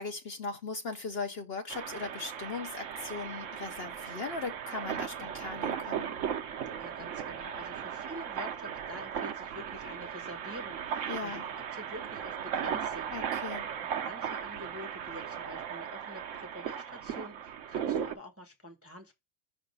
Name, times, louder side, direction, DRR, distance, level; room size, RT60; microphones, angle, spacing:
voice 1, 0.0-6.1 11.1-11.5 13.1-13.7, left 4 dB, 55° left, 0.9 m, -38 dB
sound 1, 1.7-18.1, right 8 dB, 65° right, 1.0 m, -37 dB
voice 2, 6.8-11.4 11.7-13.1 14.0-19.1, left 1 dB, 10° right, 0.8 m, -47 dB
5.7 x 3.2 x 5.3 m
omnidirectional pair, 1.5 m